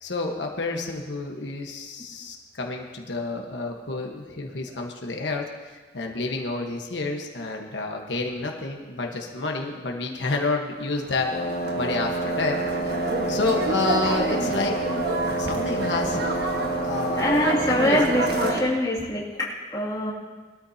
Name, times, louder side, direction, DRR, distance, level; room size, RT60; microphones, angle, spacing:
voice 1, 0.0-11.5 11.7-12.6 13.3-14.7 15.4-16.2 16.8-17.4 17.7-18.0, left 3 dB, 85° left, 1 dB, 1.3 m, -29 dB
sound 1, 10.9-18.6, right 1 dB, 60° right, 1.5 m, -30 dB
Wind instrument woodwind instrument, 11.3-18.7, right 2 dB, 45° left, 0.8 m, -29 dB
voice 2, 17.1-20.1, left 1 dB, 20° left, -6 dB, 2.4 m, -24 dB
21.5 x 13.0 x 2.8 m, 1.4 s
head